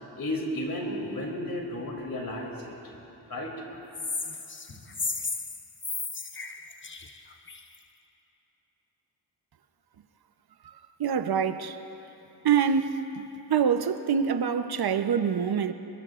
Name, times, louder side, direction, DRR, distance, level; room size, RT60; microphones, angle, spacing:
voice 1, 0.2-2.7 3.3-3.6, left 1 dB, 50° left, 3.1 m, -33 dB
sound 1, 3.9-7.7, left 4 dB, 25° left, 0.9 m, -34 dB
voice 2, 11.0-11.8 12.4-13.0 13.5-15.7, right 7 dB, 55° right, 0.9 m, -25 dB
22.5 x 21.5 x 2.5 m
cardioid pair, 65°, 44 cm